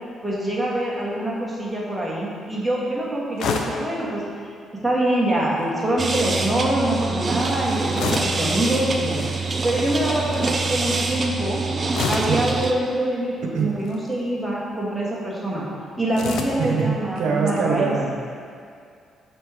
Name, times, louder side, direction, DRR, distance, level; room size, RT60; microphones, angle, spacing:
voice 1, 0.2-4.2 4.7-9.2 9.6-11.6 12.1-15.6 16.0-17.9, right 1 dB, 5° right, -6 dB, 1.4 m, -24 dB
sound 1, 3.4-3.9 5.5-5.9 7.9-8.5 9.0-9.3 11.9-12.4 13.7-14.1 16.1-16.7, left 5 dB, 75° left, 0.5 m, -28 dB
sound 2, 6.0-12.7, right 3 dB, 35° right, 0.5 m, -25 dB
voice 2, 16.6-18.1, right 5 dB, 80° right, 0 dB, 0.8 m, -23 dB
6.2 x 3.3 x 4.8 m, 2.3 s
cardioid pair, 90°, 0 cm